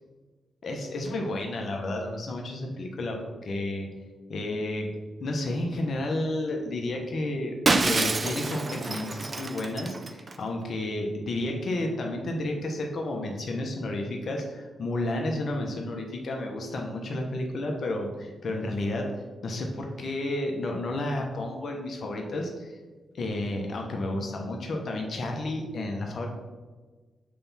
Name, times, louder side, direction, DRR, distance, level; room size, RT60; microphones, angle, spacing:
voice 1, 0.6-3.9 4.3-4.9 5.2-7.5 7.8-22.7 23.1-26.3, left 1 dB, 60° left, 1 dB, 1.1 m, -31 dB
Shatter, 7.7-10.3, right 3 dB, 40° right, 0.6 m, -27 dB
6.7 x 3.4 x 5.7 m, 1.3 s
cardioid pair, 60°, 0 cm